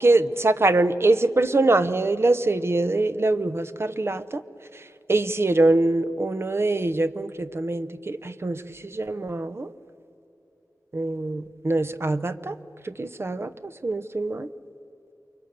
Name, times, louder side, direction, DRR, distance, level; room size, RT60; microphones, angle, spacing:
voice 1, 0.0-4.4 5.1-9.7 10.9-12.6 12.8-14.5, right 2 dB, 45° right, 12 dB, 0.8 m, -23 dB
28.5 x 23.5 x 6.8 m, 2.9 s
wide cardioid pair, 85°, 6 cm